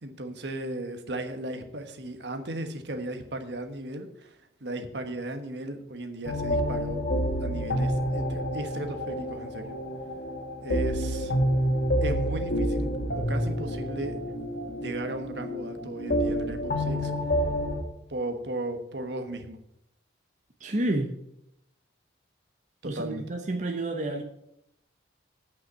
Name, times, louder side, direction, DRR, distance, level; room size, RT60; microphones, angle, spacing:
voice 1, 0.0-7.0 7.4-9.7 10.6-11.3 12.0-14.2 14.8-17.1 18.1-19.6 22.8-23.2, right 1 dB, 65° right, 6 dB, 1.2 m, -36 dB
sound 1, 6.3-17.8, equal, 65° left, 1.7 m, -28 dB
voice 2, 20.6-21.1 22.8-24.2, right 1 dB, 40° right, 4 dB, 0.8 m, -29 dB
8.9 x 5.8 x 8.1 m, 0.79 s
head